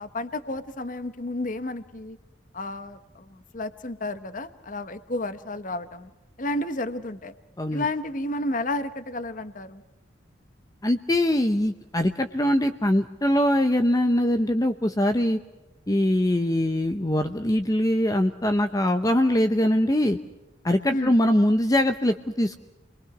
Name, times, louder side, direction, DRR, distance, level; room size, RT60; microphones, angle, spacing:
voice 1, 0.0-2.2 2.5-6.1 6.4-7.3 7.7-9.8 20.9-21.1, left 2 dB, 45° left, 12 dB, 1.1 m, -31 dB
voice 2, 10.8-15.4 15.9-20.2 20.6-22.6, left 1 dB, 20° left, 8 dB, 0.8 m, -22 dB
29.5 x 22.0 x 6.0 m, 1.0 s
head